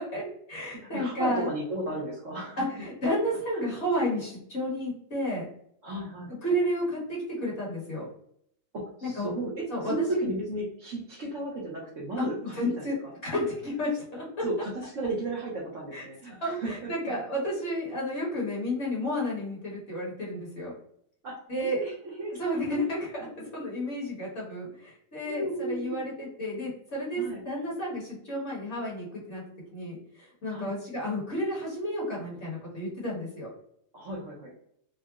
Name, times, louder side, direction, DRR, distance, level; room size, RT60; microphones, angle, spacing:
voice 1, 0.0-1.5 2.6-5.5 6.4-8.1 9.0-9.3 9.7-10.3 12.2-12.3 12.5-12.9 13.2-14.2 15.9-16.0 16.3-20.7 21.5-21.8 22.4-23.3 23.5-29.4 29.7-33.5, equal, 45° left, -5 dB, 1.2 m, -31 dB
voice 2, 0.8-2.6 3.5-3.8 5.8-6.3 8.7-13.1 14.4-16.9 21.2-21.9 22.2-22.8 23.2-23.5 25.2-26.0 27.2-27.4 30.5-30.7 33.9-34.5, right 2 dB, 60° right, -3 dB, 0.9 m, -34 dB
3.7 x 2.0 x 2.3 m, 0.69 s
omnidirectional pair, 1.8 m